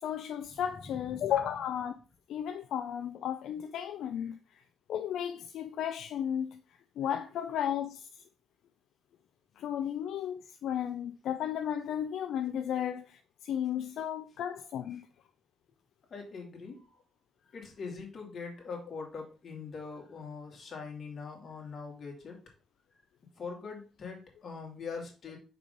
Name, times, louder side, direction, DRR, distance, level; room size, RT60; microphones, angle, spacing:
voice 1, 0.0-2.0 2.3-4.6 4.9-6.6 7.0-8.1 9.6-15.0, left 9 dB, 80° left, 0.4 m, -34 dB
voice 2, 16.1-16.8 17.5-22.4 23.4-25.4, left 5 dB, 50° left, 2.3 m, -42 dB
5.3 x 4.6 x 5.2 m
cardioid pair, 110°, 0 cm